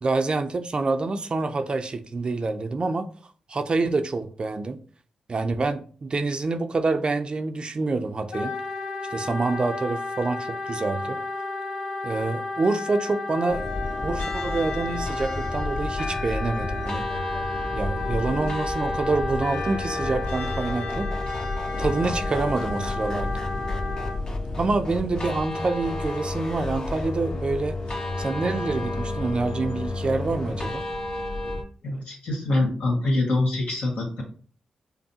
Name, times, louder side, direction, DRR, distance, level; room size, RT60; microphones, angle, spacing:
voice 1, 0.0-3.1 3.5-4.8 5.3-8.5 9.1-11.2 12.0-13.6 14.0-17.1 17.7-21.1 21.8-23.4 24.6-27.8 28.2-30.9, right 3 dB, 45° right, 0.5 m, -27 dB
Wind instrument woodwind instrument, 8.3-24.2, left 3 dB, 90° left, 0.7 m, -33 dB
sound 1, 13.5-31.6, left 2 dB, 50° left, 1.2 m, -32 dB
sound 2, 15.3-30.7, left 2 dB, 30° left, 0.8 m, -37 dB
voice 2, 31.8-34.2, left 2 dB, 70° left, 1.7 m, -25 dB
5.3 x 2.1 x 2.8 m
supercardioid pair, 45°, 2 cm